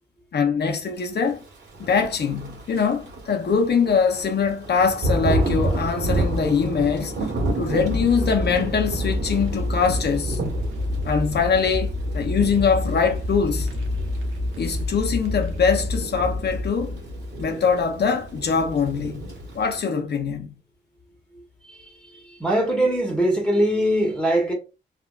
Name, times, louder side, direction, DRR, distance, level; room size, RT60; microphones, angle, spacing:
voice 1, 0.3-1.4 1.8-7.1 7.5-10.4 11.0-13.7 14.6-16.9 17.4-19.2 19.5-20.5, left 5 dB, 55° left, 0.8 m, -23 dB
Thunder / Rain, 1.7-19.8, right 1 dB, 60° right, 1.6 m, -30 dB
sound 1, 7.8-17.9, left 1 dB, 80° right, 0.8 m, -28 dB
voice 2, 22.4-24.5, right 1 dB, 5° left, 1.4 m, -21 dB
3.6 x 2.9 x 2.4 m
cardioid pair, 65°, 20 cm